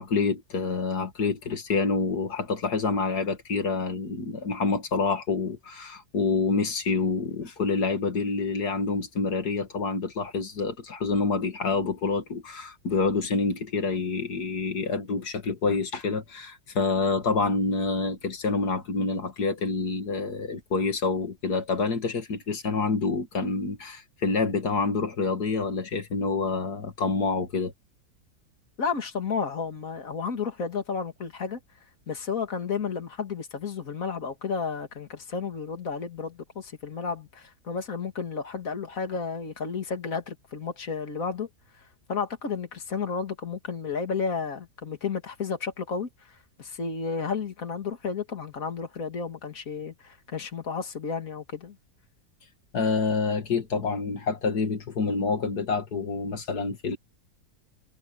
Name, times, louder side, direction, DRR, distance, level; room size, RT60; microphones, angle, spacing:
voice 1, 0.0-27.7 52.7-57.0, left 4 dB, 90° left, 2.7 m, -27 dB
voice 2, 28.8-31.6 32.1-41.5 41.7-41.8 42.1-51.8, left 5 dB, 60° left, 2.7 m, -32 dB
omnidirectional pair, 1.6 m